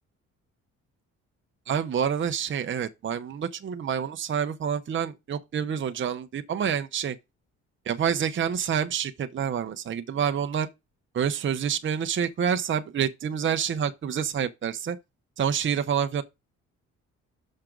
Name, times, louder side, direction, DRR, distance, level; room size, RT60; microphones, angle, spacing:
voice 1, 1.7-7.2 7.9-10.7 11.1-15.0 15.4-16.2, right 8 dB, 40° right, 0.8 m, -27 dB
6.6 x 5.8 x 3.8 m
cardioid pair, 90°, 30 cm